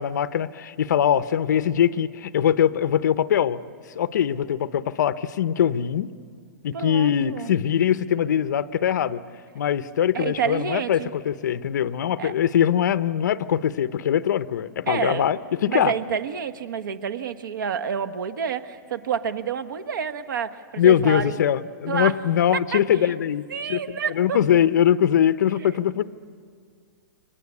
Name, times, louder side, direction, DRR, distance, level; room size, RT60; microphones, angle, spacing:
voice 1, 0.0-3.6 3.9-6.1 6.6-9.2 9.5-15.9 20.8-26.0, left 9 dB, 60° left, 13 dB, 0.8 m, -22 dB
voice 2, 6.7-7.5 10.1-11.1 12.2-12.3 14.9-15.3 15.7-21.4 21.9-22.1 22.7-22.8 23.5-24.4 25.5-25.8, right 7 dB, 80° right, 10 dB, 1.4 m, -29 dB
29.0 x 24.0 x 8.4 m, 2.1 s
hypercardioid pair, 180°, 11 cm